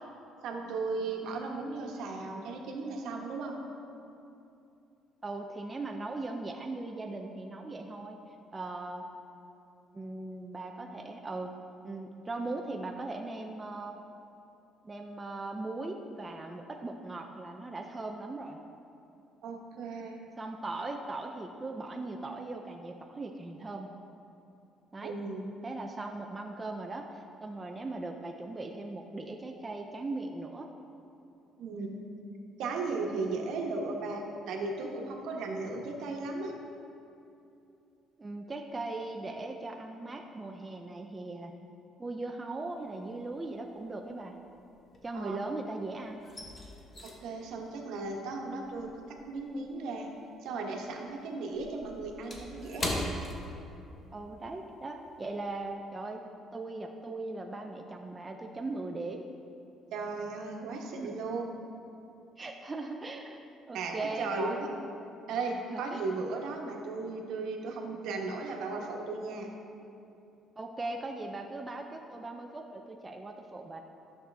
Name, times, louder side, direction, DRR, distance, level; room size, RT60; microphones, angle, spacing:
voice 1, 0.4-3.6 19.4-20.2 25.0-25.5 31.6-32.0 32.6-36.5 45.1-45.4 47.0-50.1 50.4-53.0 59.9-61.5 63.7-64.7 65.3-69.5, right 3 dB, 70° right, 1 dB, 1.2 m, -36 dB
voice 2, 5.2-8.2 8.5-9.1 9.9-11.5 11.8-13.9 14.8-18.6 20.4-23.9 24.9-25.1 25.6-30.7 38.2-41.5 42.0-44.4 45.0-46.2 54.1-56.2 56.5-59.3 61.0-61.2 62.4-63.4 63.7-64.7 65.7-66.0 70.6-73.8, right 2 dB, 15° right, 2 dB, 0.4 m, -39 dB
sound 1, 42.8-43.3 43.6-45.6 45.9-50.6 50.8-54.2 54.5-54.7 55.1-55.4, left 1 dB, 25° left, 1.1 m, -40 dB
12.5 x 6.6 x 3.4 m, 2.8 s
cardioid pair, 165°, 0 cm